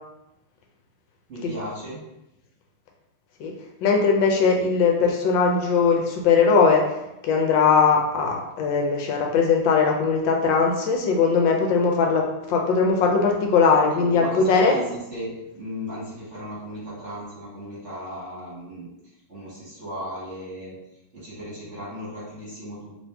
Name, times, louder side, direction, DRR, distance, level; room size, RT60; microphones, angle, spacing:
voice 1, 1.3-2.0 13.9-18.9 19.3-20.7 21.1-23.0, equal, 45° right, -8 dB, 1.4 m, -36 dB
voice 2, 3.8-6.8 7.2-14.8, left 5 dB, 80° left, 1 dB, 1.3 m, -20 dB
3.1 x 2.6 x 3.3 m, 0.89 s
omnidirectional pair, 2.1 m